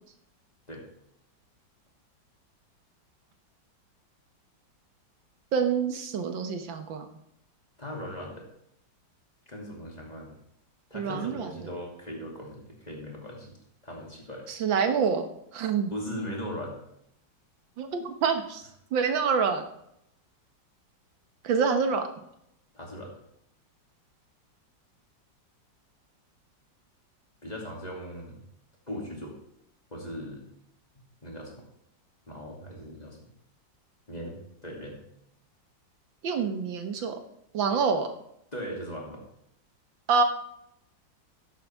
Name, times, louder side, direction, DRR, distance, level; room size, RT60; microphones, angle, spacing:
voice 1, 5.5-7.1 10.9-11.5 14.5-15.3 15.5-15.9 17.8-18.6 18.9-19.6 21.4-22.1 36.2-37.2 37.5-38.1 40.1-40.2, right 5 dB, 90° right, 7 dB, 1.9 m, -26 dB
voice 2, 7.8-8.4 9.5-10.4 10.9-13.6 13.8-14.5 15.9-16.8 22.7-23.1 27.4-28.4 28.9-29.4 29.9-30.4 31.2-31.7 32.3-33.3 34.1-35.0 38.5-39.2, equal, 20° left, -2 dB, 2.9 m, -39 dB
13.5 x 10.5 x 3.6 m, 0.77 s
omnidirectional pair, 2.0 m